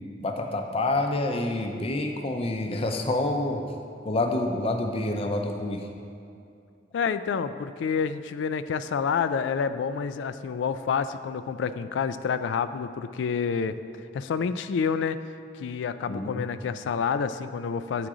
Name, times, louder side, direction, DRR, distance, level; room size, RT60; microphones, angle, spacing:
voice 1, 0.2-3.6 4.0-5.8 16.1-16.4, left 2 dB, 35° left, 4 dB, 0.5 m, -27 dB
voice 2, 6.9-13.8 14.1-15.2 15.6-18.1, left 6 dB, 90° left, 12 dB, 0.3 m, -28 dB
8.7 x 3.8 x 4.8 m, 2.5 s
head